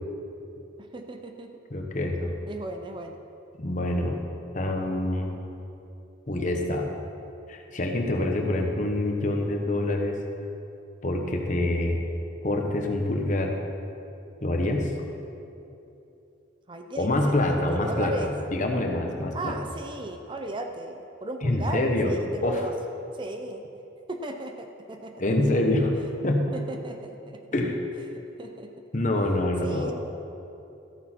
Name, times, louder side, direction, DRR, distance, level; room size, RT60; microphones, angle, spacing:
voice 1, 0.8-1.6 2.5-3.2 16.7-18.3 19.3-22.7 23.2-23.7 24.1-25.1 26.5-27.4 28.4-28.7 29.6-29.9, right 2 dB, 25° right, 5 dB, 0.5 m, -36 dB
voice 2, 1.7-2.3 3.6-4.2 4.5-5.3 6.3-6.9 7.5-10.2 11.0-12.0 12.4-13.6 14.4-14.9 16.9-19.6 21.4-22.1 22.4-22.6 25.2-25.9 26.2-26.5 27.5-27.8 28.9-29.9, left 1 dB, 40° left, 2 dB, 1.0 m, -26 dB
13.5 x 8.2 x 4.4 m, 2.8 s
head